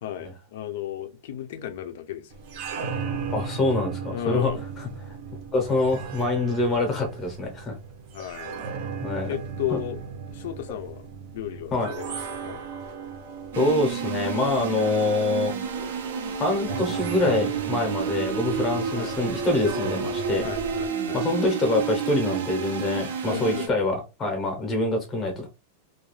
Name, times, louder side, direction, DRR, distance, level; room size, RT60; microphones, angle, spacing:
voice 1, 0.0-2.3 4.1-4.6 8.1-8.6 9.2-10.0 10.3-11.1 11.3-12.2 12.4-12.6 18.9-19.2 20.4-21.4 23.3-23.7, left 11 dB, 55° left, 0.4 m, -34 dB
sound 1, 2.3-20.9, right 6 dB, 40° right, 0.6 m, -37 dB
voice 2, 3.3-4.5 4.8-5.1 5.5-7.7 9.0-9.3 9.7-9.8 11.7-11.9 13.6-15.5 16.4-20.5 21.1-25.5, left 2 dB, 15° left, 0.7 m, -25 dB
sound 2, 13.5-23.7, right 6 dB, 75° right, 0.7 m, -30 dB
2.3 x 2.3 x 3.0 m
supercardioid pair, 175°, 0 cm